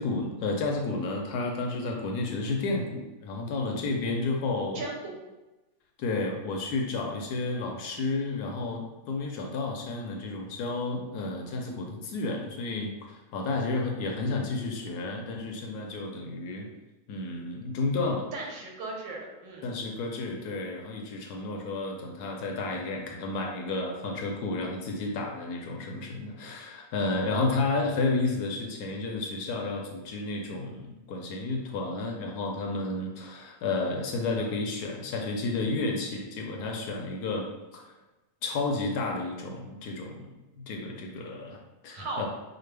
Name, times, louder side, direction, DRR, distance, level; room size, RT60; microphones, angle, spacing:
voice 1, 0.0-4.8 6.0-16.7 17.1-18.3 19.6-37.8 38.4-40.3 40.6-41.6 41.8-42.3, left 3 dB, 70° left, 1 dB, 1.0 m, -31 dB
voice 2, 4.7-5.1 18.3-19.8 41.9-42.3, right 2 dB, 85° right, -1 dB, 1.6 m, -37 dB
5.0 x 2.3 x 3.2 m, 1.1 s
omnidirectional pair, 1.9 m